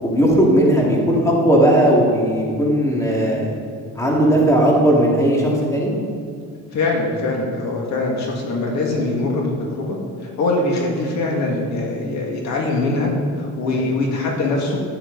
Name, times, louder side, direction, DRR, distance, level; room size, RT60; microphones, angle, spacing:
voice 1, 0.0-3.5 3.9-5.9 13.7-13.8, right 1 dB, 10° left, -3 dB, 2.4 m, -17 dB
voice 2, 6.7-9.5 9.8-10.0 10.2-13.1 13.4-14.8, left 2 dB, 65° left, -1 dB, 2.2 m, -22 dB
12.5 x 9.8 x 4.0 m, 2.2 s
cardioid pair, 130°, 30 cm